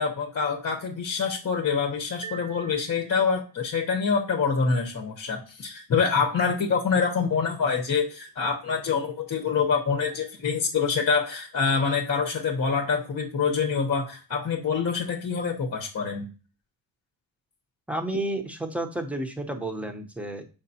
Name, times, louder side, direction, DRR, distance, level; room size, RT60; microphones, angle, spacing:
voice 1, 0.0-16.3, left 5 dB, 35° left, 2 dB, 1.0 m, -26 dB
sound 1, 2.2-3.7, right 7 dB, 45° right, 1.0 m, -44 dB
voice 2, 17.9-20.4, right 1 dB, 5° right, 4 dB, 0.9 m, -31 dB
6.4 x 5.2 x 2.8 m, 0.35 s
cardioid pair, 95°, 42 cm